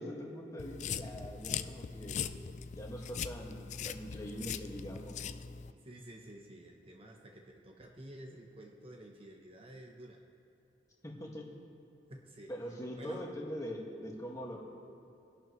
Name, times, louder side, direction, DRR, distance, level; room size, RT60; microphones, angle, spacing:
voice 1, 0.0-2.3 2.7-5.4 11.0-11.5 12.5-14.6, equal, 20° left, -2 dB, 1.8 m, -43 dB
sound 1, 0.6-5.7, left 7 dB, 45° left, 0.3 m, -40 dB
voice 2, 5.8-10.2 12.1-12.5 13.0-13.3, right 1 dB, 35° right, 1 dB, 0.9 m, -51 dB
22.0 x 11.5 x 3.1 m, 2.9 s
head